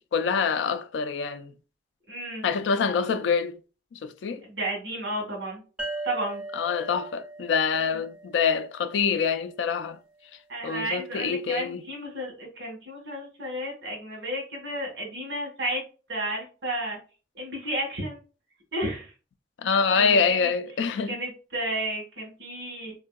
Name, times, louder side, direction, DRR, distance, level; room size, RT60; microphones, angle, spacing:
voice 1, 0.0-1.5 2.4-3.6 3.9-4.4 6.5-10.0 10.6-11.8 19.6-21.2, left 5 dB, 85° left, 0.3 m, -25 dB
voice 2, 2.1-2.5 4.4-5.6 6.0-6.4 7.8-8.0 10.5-15.8 16.1-17.0 17.3-18.2 18.7-19.1 19.9-20.5 21.1-22.9, right 1 dB, 75° right, 1.2 m, -32 dB
sound 1, 5.8-9.2, right 2 dB, 5° right, 0.5 m, -38 dB
3.5 x 2.7 x 2.2 m
head